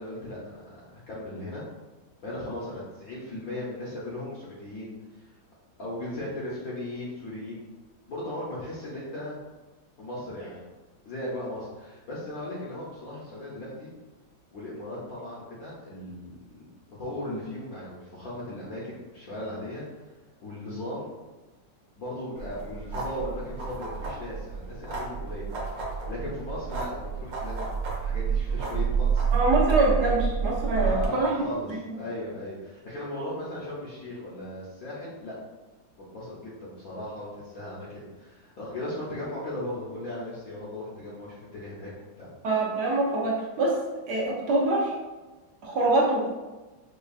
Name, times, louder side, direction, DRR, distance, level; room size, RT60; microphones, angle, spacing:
voice 1, 0.0-1.6 2.2-5.3 5.8-7.6 8.1-9.4 10.0-10.7 11.1-13.9 14.5-16.6 17.0-19.8 20.4-21.1 22.0-25.5 26.1-27.6 28.0-29.2 30.8-31.7 31.9-35.3 36.0-41.9 42.2-42.3, left 1 dB, 60° left, -6 dB, 1.1 m, -37 dB
sound 1, 22.4-31.1, right 6 dB, 85° right, 1.5 m, -29 dB
voice 2, 29.3-31.3 31.7-31.8 42.4-43.8 44.1-44.9 45.6-46.3, right 2 dB, 70° right, -2 dB, 1.2 m, -24 dB
5.1 x 2.3 x 2.3 m, 1.2 s
omnidirectional pair, 1.9 m